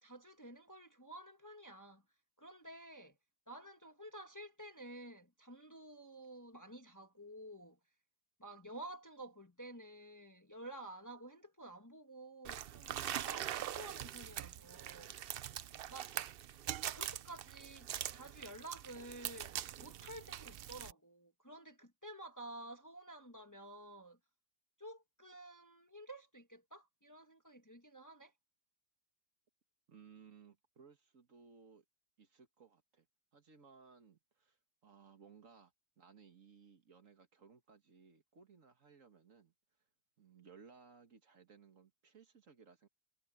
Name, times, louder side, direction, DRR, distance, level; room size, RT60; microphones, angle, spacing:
voice 1, 0.0-2.0 2.4-3.2 3.5-7.8 8.4-15.1 15.9-16.2 16.7-24.2 24.8-28.3, right 1 dB, 15° left, 1.3 m, -52 dB
sound 1, 12.4-20.9, right 11 dB, 90° right, 0.5 m, -43 dB
voice 2, 29.9-31.8 32.2-33.1 33.3-39.5 40.2-42.9, right 5 dB, 55° right, 2.0 m, -61 dB
omnidirectional pair, 1.6 m